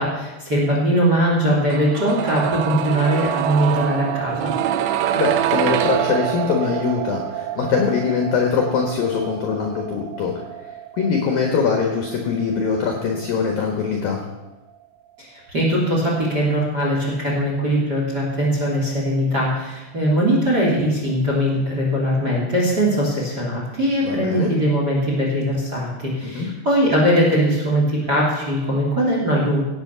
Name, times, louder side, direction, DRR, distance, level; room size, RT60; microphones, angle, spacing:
voice 1, 0.0-4.5 15.2-29.6, equal, 25° right, -1 dB, 2.7 m, -20 dB
sound 1, 1.7-13.5 13.8-13.9, right 10 dB, 90° right, 2.4 m, -26 dB
voice 2, 5.1-10.3 10.9-14.2 24.0-24.5 26.2-26.5, left 5 dB, 65° left, 2 dB, 2.3 m, -22 dB
17.0 x 8.3 x 6.8 m, 1.1 s
omnidirectional pair, 6.0 m